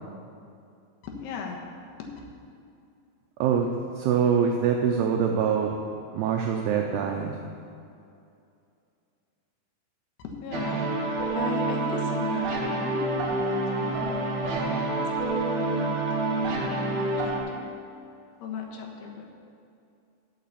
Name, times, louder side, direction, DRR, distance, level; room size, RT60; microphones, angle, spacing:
voice 1, 1.0-1.7 2.0-2.2 10.2-10.9 11.3-16.1 16.5-17.8 18.4-19.3, left 5 dB, 70° left, 0 dB, 3.0 m, -38 dB
voice 2, 4.0-5.7 6.1-7.3, right 7 dB, 80° right, 2 dB, 2.4 m, -24 dB
sound 1, 10.5-17.4, right 2 dB, 60° right, 3.2 m, -27 dB
13.5 x 5.8 x 8.5 m, 2.5 s
omnidirectional pair, 5.4 m